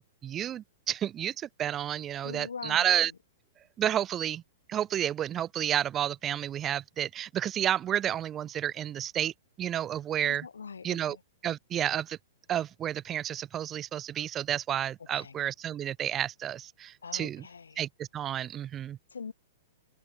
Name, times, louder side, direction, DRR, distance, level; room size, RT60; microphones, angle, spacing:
voice 1, 0.0-3.1 3.8-4.4 4.7-9.3 9.6-10.5 10.8-11.2 11.4-12.2 12.5-17.4 17.8-19.0, right 10 dB, 25° right, 0.8 m, -31 dB
voice 2, 2.2-3.2 10.2-11.2 15.0-15.4 17.0-17.8 19.1-19.3, left 5 dB, 85° left, 5.8 m, -43 dB
open air
hypercardioid pair, 115°, 0 cm